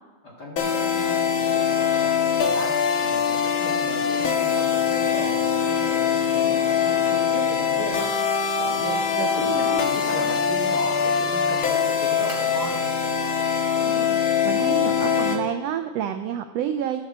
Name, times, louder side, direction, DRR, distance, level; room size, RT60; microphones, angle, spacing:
voice 1, 0.2-5.3 5.6-8.1 8.6-12.8, equal, 35° left, -3 dB, 2.1 m, -36 dB
sound 1, 0.6-15.4, left 7 dB, 55° left, 1.7 m, -23 dB
voice 2, 9.2-9.9 13.8-14.2 14.4-17.0, right 9 dB, 85° right, 8 dB, 1.4 m, -29 dB
13.5 x 11.5 x 4.3 m, 1.2 s
omnidirectional pair, 3.6 m